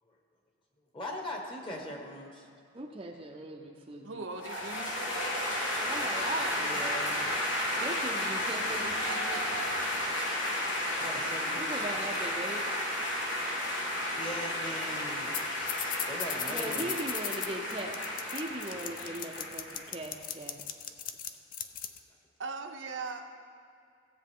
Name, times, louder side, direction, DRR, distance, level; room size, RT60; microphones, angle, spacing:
voice 1, 0.9-2.5 6.5-7.3 10.7-11.7 14.1-17.0, equal, 25° left, 1 dB, 1.3 m, -41 dB
voice 2, 2.7-4.2 5.8-6.9 7.8-9.6 11.6-12.7 16.5-18.0 18.3-20.6, right 2 dB, 30° right, 1 dB, 0.6 m, -39 dB
voice 3, 4.0-4.9 22.4-23.2, right 4 dB, 75° right, 4 dB, 0.8 m, -39 dB
sound 1, 4.4-19.9, left 1 dB, 75° left, 1.7 m, -33 dB
sound 2, 15.3-15.4 15.7-22.0, left 9 dB, 45° left, 0.5 m, -37 dB
16.0 x 7.5 x 3.7 m, 2.3 s
head